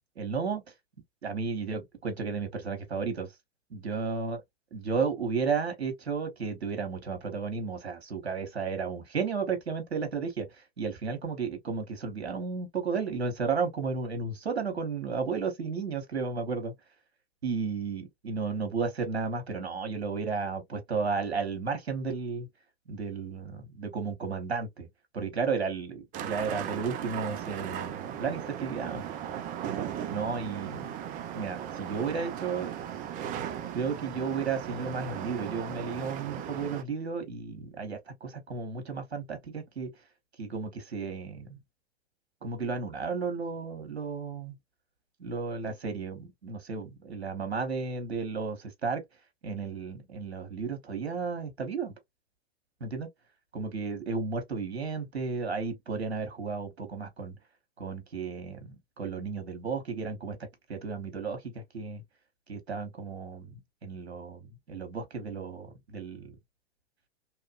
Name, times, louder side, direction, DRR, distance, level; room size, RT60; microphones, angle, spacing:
voice 1, 0.2-0.6 1.2-3.3 3.7-4.4 4.7-16.7 17.4-22.5 22.9-24.9 25.1-29.0 30.1-30.9 31.3-32.7 33.7-39.9 40.4-41.6 42.4-44.6 45.2-49.0 49.4-51.9 52.8-53.1 53.5-57.4 57.8-60.4 60.7-62.0 62.5-63.6 63.8-66.4, right 5 dB, 85° right, 1.1 m, -33 dB
sound 1, 26.1-36.8, right 9 dB, 25° right, 0.5 m, -37 dB
3.0 x 2.5 x 2.4 m
hypercardioid pair, 105°, 32 cm